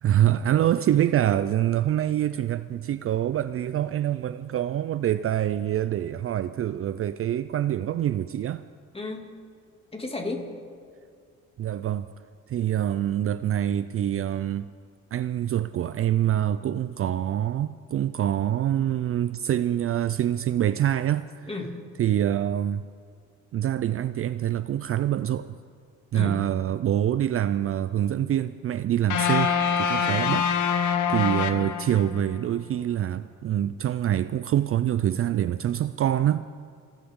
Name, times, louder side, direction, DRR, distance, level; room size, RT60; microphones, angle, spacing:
voice 1, 0.0-8.6 11.6-12.1 12.5-14.7 15.1-21.5 22.0-22.8 23.5-25.6 26.1-30.8 31.1-36.5, right 11 dB, 50° right, 0.4 m, -25 dB
voice 2, 8.9-9.3 9.9-10.5 21.5-21.8 26.1-26.4 30.0-30.2, left 3 dB, 20° left, 2.5 m, -33 dB
sound 1, 29.1-32.3, left 7 dB, 75° left, 1.0 m, -25 dB
29.0 x 12.0 x 3.7 m
cardioid pair, 90°, 30 cm